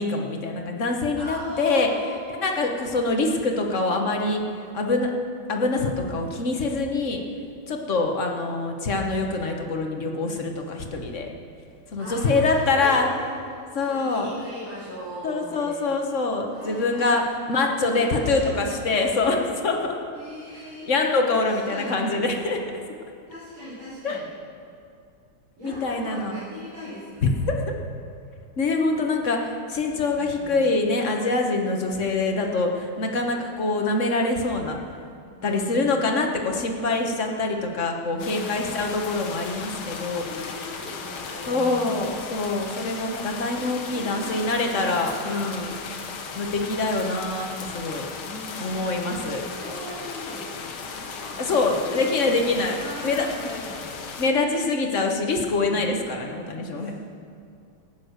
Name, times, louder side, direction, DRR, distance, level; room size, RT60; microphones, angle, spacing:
voice 1, 0.0-1.9 2.3-4.4 4.7-5.1 5.5-7.2 7.7-11.3 11.9-13.1 13.7-14.3 15.2-20.0 20.9-22.8 24.0-24.2 25.6-26.3 27.2-27.7 28.6-34.8 35.4-40.2 41.5-45.7 46.3-48.1 48.6-49.4 51.5-53.3 54.2-56.9, left 3 dB, 40° left, 2 dB, 1.3 m, -25 dB
voice 2, 1.1-3.0 12.0-15.9 16.4-17.2 17.5-17.6 17.9-19.4 20.1-20.9 21.3-22.0 23.3-24.3 25.6-27.5 30.1-30.6 35.4-36.0 38.1-38.9 39.8-42.1 43.5-43.6 43.9-45.4 48.2-54.1 55.4-55.9 56.6-56.9, equal, 40° right, -13 dB, 4.5 m, -40 dB
sound 1, 38.2-54.3, left 5 dB, 85° left, 1.9 m, -36 dB
15.0 x 9.2 x 6.6 m, 2.3 s
omnidirectional pair, 2.2 m